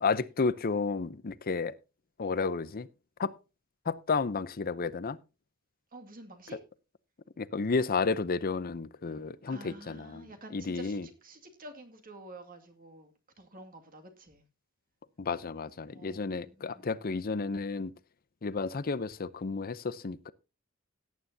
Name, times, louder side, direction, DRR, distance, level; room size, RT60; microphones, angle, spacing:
voice 1, 0.0-1.7 2.2-2.9 3.2-3.3 3.8-5.2 7.4-11.1 15.2-17.9 18.4-20.3, left 4 dB, 45° left, 0.6 m, -32 dB
voice 2, 5.9-6.6 9.5-14.4 15.9-16.9, right 2 dB, 40° right, 2.2 m, -49 dB
17.5 x 9.4 x 2.7 m
head